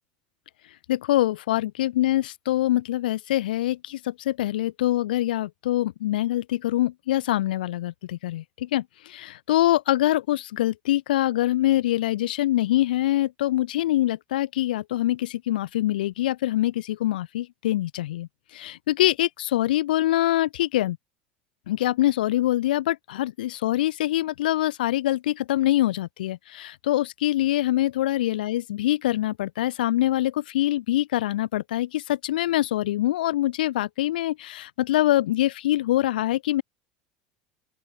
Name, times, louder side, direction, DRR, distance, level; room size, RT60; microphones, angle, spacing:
voice 1, 0.9-21.0 21.7-36.6, left 14 dB, 90° left, 2.1 m, -24 dB
open air
supercardioid pair, 95°, 5 cm